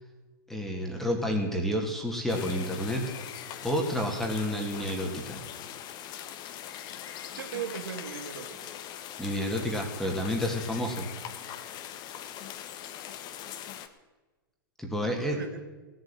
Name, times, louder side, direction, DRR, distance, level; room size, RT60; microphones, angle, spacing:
voice 1, 0.5-3.1 3.6-5.4 9.2-11.1 14.8-15.4, equal, ahead, 1 dB, 2.5 m, -30 dB
sound 1, 2.3-13.9, left 10 dB, 40° left, 1.3 m, -41 dB
voice 2, 7.4-8.7 15.0-15.6, right 8 dB, 75° right, 6 dB, 2.2 m, -38 dB
16.5 x 8.0 x 9.2 m, 1.3 s
hypercardioid pair, 110°, 12 cm